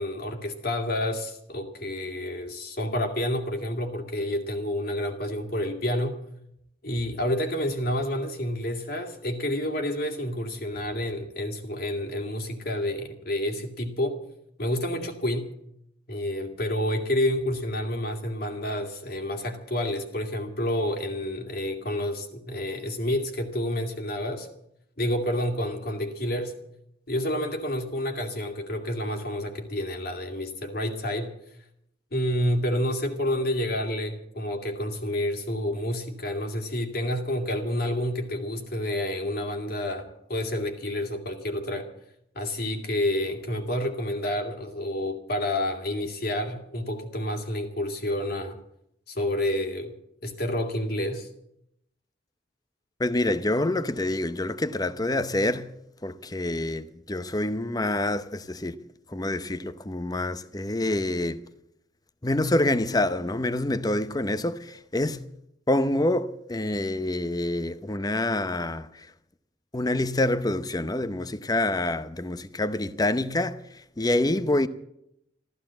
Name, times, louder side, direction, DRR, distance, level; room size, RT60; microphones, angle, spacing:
voice 1, 0.0-6.2 6.8-14.2 14.6-15.5 16.1-24.5 25.0-26.5 27.1-31.3 32.1-41.9 42.3-48.6 49.1-49.9 50.2-51.3, left 1 dB, 55° left, 2.4 m, -29 dB
voice 2, 53.0-55.7 56.0-58.7 59.1-61.5 62.2-65.3 65.7-69.1 69.7-74.7, left 1 dB, 20° left, 0.7 m, -27 dB
14.5 x 13.0 x 7.6 m
head